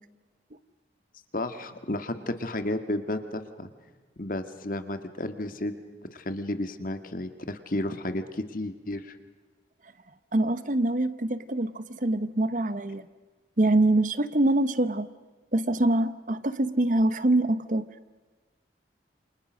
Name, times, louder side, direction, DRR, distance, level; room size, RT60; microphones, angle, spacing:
voice 1, 1.3-3.7 4.2-5.7 6.1-9.2, left 1 dB, 50° left, 8 dB, 1.9 m, -32 dB
voice 2, 10.3-13.0 13.6-15.1 15.5-17.9, right 1 dB, 45° right, 13 dB, 1.0 m, -24 dB
28.5 x 27.0 x 6.5 m, 1.3 s
head